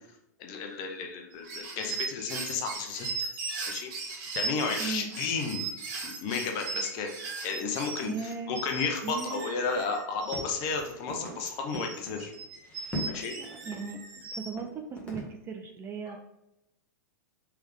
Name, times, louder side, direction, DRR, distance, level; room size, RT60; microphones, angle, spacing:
voice 1, 0.4-3.3 3.7-3.9 4.3-5.7 6.0-7.1 7.4-12.3 13.1-13.3 16.1-16.2, left 5 dB, 45° left, 3 dB, 0.8 m, -33 dB
sound 1, 1.3-10.9 11.4-14.5, right 4 dB, 50° right, 1.1 m, -38 dB
voice 2, 4.8-5.1 8.0-8.6 9.0-9.4 13.3-14.0 14.3-16.2, right 5 dB, 25° right, 4 dB, 0.5 m, -37 dB
sound 2, 10.3-12.3 12.5-13.3 13.7-13.8 14.2-14.3 14.6-14.7 15.0-15.3, left 1 dB, 10° left, 1.3 m, -39 dB
3.5 x 3.4 x 3.5 m, 0.87 s
hypercardioid pair, 105°, 10 cm